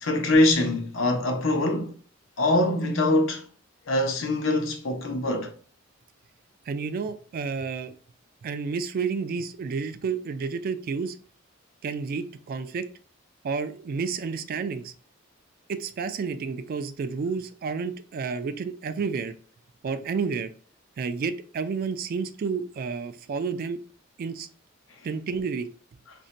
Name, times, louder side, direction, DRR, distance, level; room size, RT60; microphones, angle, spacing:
voice 1, 0.0-1.9 2.4-3.4 3.9-5.5, left 1 dB, 75° left, 0.7 m, -23 dB
voice 2, 6.7-8.0 8.4-11.2 11.8-12.9 13.4-14.9 15.7-19.3 19.8-20.5 21.0-23.8 24.2-24.5 25.0-25.7, right 5 dB, 50° right, 0.3 m, -30 dB
2.5 x 2.1 x 3.8 m
head